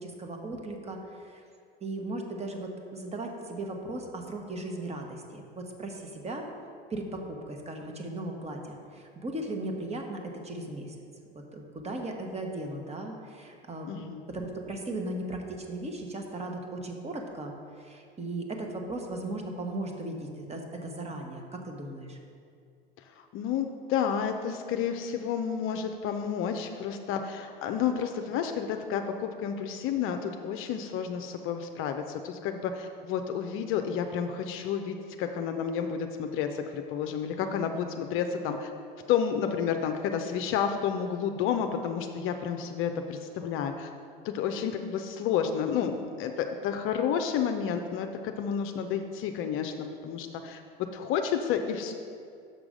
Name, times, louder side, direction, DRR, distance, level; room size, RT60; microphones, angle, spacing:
voice 1, 0.0-1.4 1.8-6.5 6.9-10.9 11.3-17.5 17.8-22.2, right 2 dB, 20° right, 2 dB, 1.2 m, -37 dB
voice 2, 13.9-14.2 23.3-38.7 39.1-43.9 44.2-50.6 50.9-51.9, left 7 dB, 45° left, 6 dB, 0.6 m, -30 dB
6.7 x 6.0 x 5.0 m, 2.3 s
hypercardioid pair, 80°, 29 cm